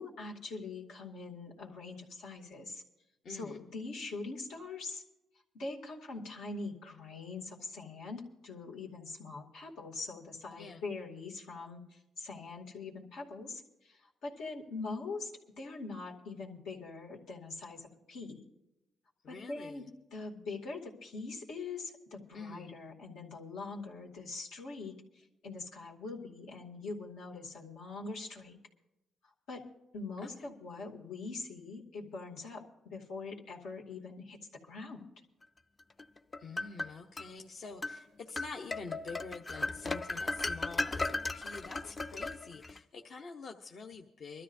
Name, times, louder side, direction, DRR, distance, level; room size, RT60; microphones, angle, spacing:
voice 1, 0.0-2.8 3.3-5.0 5.5-15.3 15.6-18.4 19.3-28.6 29.5-29.6 29.9-34.4 34.6-35.1, left 3 dB, 85° left, -1 dB, 2.4 m, -43 dB
voice 2, 3.2-3.6 10.6-10.8 19.2-19.9 22.3-22.7 30.2-30.5 36.4-44.4, left 4 dB, 55° left, 1 dB, 0.9 m, -46 dB
sound 1, 36.0-37.3 37.8-38.0 38.4-42.8, left 2 dB, 30° left, 0.5 m, -36 dB
24.0 x 13.0 x 2.7 m, 0.96 s
cardioid pair, 90°, 0 cm